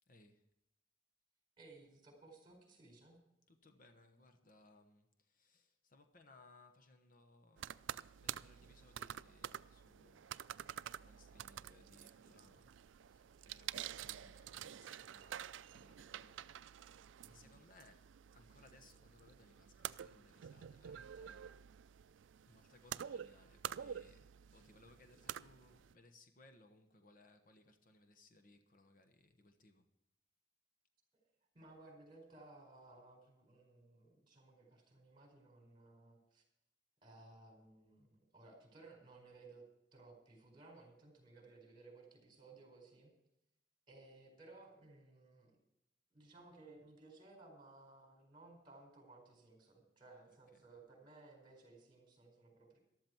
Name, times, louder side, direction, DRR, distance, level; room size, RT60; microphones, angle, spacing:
voice 1, 0.1-0.5 3.5-12.8 13.0-21.6 22.4-29.9 50.3-50.7, left 2 dB, 45° left, 1.2 m, -66 dB
voice 2, 1.6-3.2 17.2-17.5 31.5-36.4 37.0-39.6 39.9-43.1 43.9-45.6 46.1-52.8, right 2 dB, 25° right, 4.5 m, -60 dB
sound 1, 7.6-25.9, right 10 dB, 85° right, 0.4 m, -49 dB
13.5 x 12.5 x 4.6 m
head